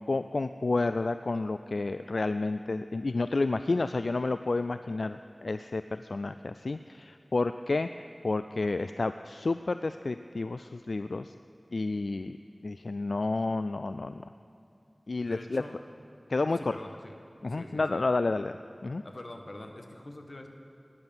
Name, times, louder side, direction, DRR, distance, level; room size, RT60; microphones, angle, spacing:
voice 1, 0.1-11.4 11.7-12.4 12.6-14.2 15.1-15.6 16.3-16.7 17.4-18.5 18.8-19.0, left 3 dB, 85° left, 11 dB, 0.3 m, -30 dB
voice 2, 15.2-15.8 16.6-17.2 17.5-18.0 19.0-20.5, left 1 dB, 60° left, 4 dB, 1.6 m, -44 dB
18.0 x 9.7 x 7.3 m, 2.8 s
wide cardioid pair, 45°, 0 cm